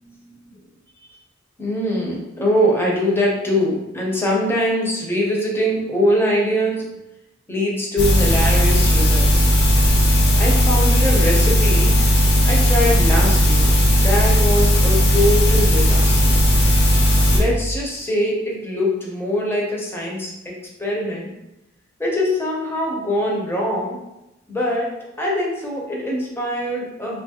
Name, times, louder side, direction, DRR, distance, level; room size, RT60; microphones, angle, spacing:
voice 1, 0.0-0.4 1.6-6.9 7.5-9.5 10.3-11.9 12.4-16.4 17.3-21.3 22.0-24.0 24.5-24.9 25.2-27.2, equal, 10° left, -3 dB, 0.6 m, -23 dB
sound 1, 8.0-17.4, equal, 55° left, 0.6 m, -16 dB
2.8 x 2.3 x 2.8 m, 0.93 s
head